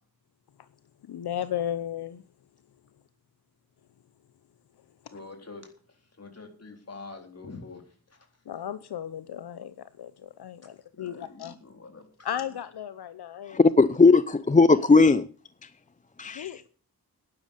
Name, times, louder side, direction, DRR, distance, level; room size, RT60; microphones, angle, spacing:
voice 1, 1.1-2.2 8.5-11.5 12.2-13.6 16.3-16.7, left 10 dB, 80° left, 0.8 m, -35 dB
voice 2, 5.1-8.3 10.6-12.5, left 3 dB, 40° left, 3.9 m, -46 dB
voice 3, 13.5-15.2 16.2-16.6, left 4 dB, 20° left, 0.5 m, -18 dB
11.0 x 11.0 x 6.6 m
cardioid pair, 75°, 38 cm